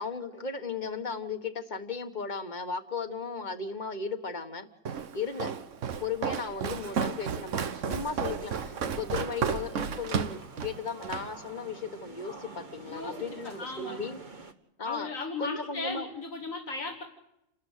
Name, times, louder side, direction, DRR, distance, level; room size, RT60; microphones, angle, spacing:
voice 1, 0.0-4.7 5.1-5.5 6.0-14.2 14.8-15.1 15.4-16.1, left 5 dB, 35° left, 8 dB, 1.7 m, -36 dB
Walk footsteps, 4.9-11.3, right 7 dB, 70° right, 1.4 m, -33 dB
sound 1, 7.8-14.5, right 3 dB, 35° right, 1.7 m, -48 dB
voice 2, 12.8-13.2 13.4-14.1 14.8-17.0, left 3 dB, 90° left, 1 dB, 2.8 m, -37 dB
29.0 x 13.0 x 8.3 m, 0.84 s
omnidirectional pair, 1.4 m